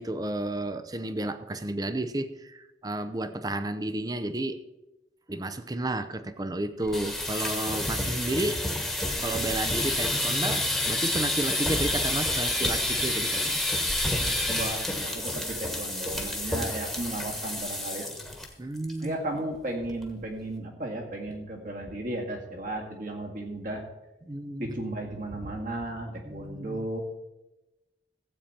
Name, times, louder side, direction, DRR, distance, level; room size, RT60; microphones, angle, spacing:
voice 1, 0.0-4.6 5.3-8.6 9.2-13.6 18.6-19.2 24.3-24.9 26.2-26.9, right 1 dB, 20° right, 11 dB, 0.6 m, -32 dB
sound 1, 6.8-18.5 18.8-19.1 19.4-19.5 19.8-20.2, left 1 dB, ahead, 1.4 m, -29 dB
voice 2, 14.5-18.1 19.0-23.8 24.6-27.0, right 1 dB, 50° right, 1 dB, 2.0 m, -34 dB
15.5 x 8.5 x 4.4 m, 1.0 s
head